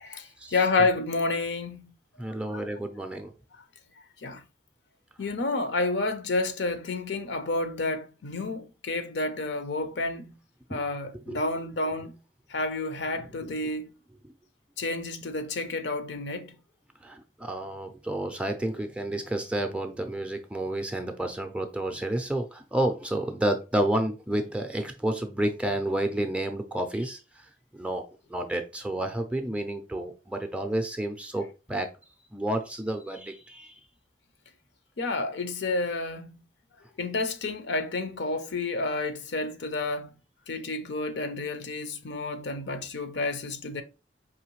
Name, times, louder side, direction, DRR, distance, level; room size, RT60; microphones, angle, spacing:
voice 1, 0.0-1.8 2.5-2.6 4.2-4.4 5.2-10.3 10.7-12.1 12.5-13.9 14.8-16.5 35.0-36.3 37.0-40.1 40.5-43.8, left 3 dB, 70° left, 0.6 m, -30 dB
voice 2, 2.2-3.3 10.7-10.8 11.3-11.4 13.4-13.5 17.0-31.9 32.3-33.8, right 1 dB, 5° right, 0.4 m, -30 dB
4.9 x 3.1 x 3.1 m
head